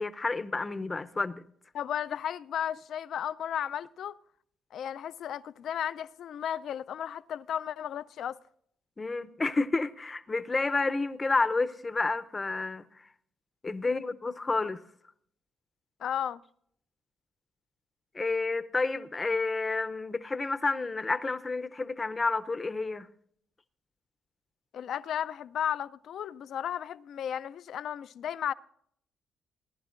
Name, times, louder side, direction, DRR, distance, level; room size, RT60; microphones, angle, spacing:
voice 1, 0.0-1.4 9.0-12.9 13.6-14.8 18.1-23.1, left 3 dB, 25° left, 0.6 m, -30 dB
voice 2, 1.7-4.2 4.7-8.4 13.8-14.0 16.0-16.4 24.7-28.5, left 9 dB, 70° left, 0.4 m, -34 dB
19.5 x 11.0 x 2.5 m
cardioid pair, 90°, 0 cm